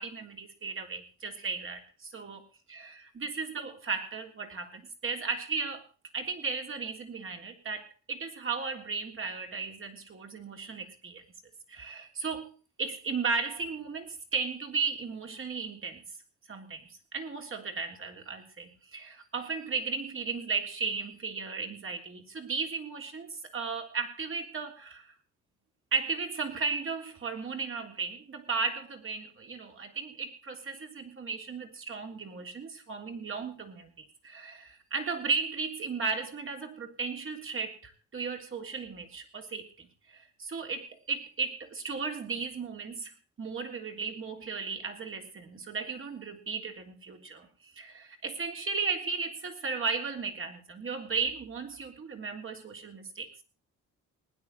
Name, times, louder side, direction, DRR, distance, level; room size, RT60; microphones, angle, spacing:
voice 1, 0.0-2.4 2.7-2.8 3.2-5.9 6.1-11.2 11.7-16.0 16.5-25.2 25.9-53.4, right 4 dB, 45° right, 4 dB, 3.5 m, -35 dB
19.5 x 10.0 x 4.2 m, 0.34 s
cardioid pair, 90°, 30 cm